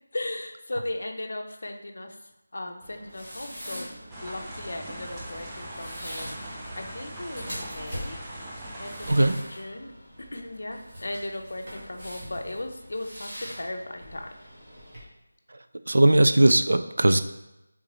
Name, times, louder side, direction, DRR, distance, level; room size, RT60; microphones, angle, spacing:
voice 1, 0.1-2.2 2.5-3.9 4.2-8.2 8.8-14.3, left 1 dB, 65° left, 5 dB, 0.6 m, -37 dB
sound 1, 2.8-15.0, equal, 30° right, 1.4 m, -42 dB
sound 2, 4.1-9.3, right 1 dB, 5° right, 0.4 m, -40 dB
voice 2, 15.9-17.2, right 1 dB, 75° right, 10 dB, 0.3 m, -19 dB
3.9 x 3.7 x 3.0 m, 0.94 s
figure-of-eight pair, 175°, 0 cm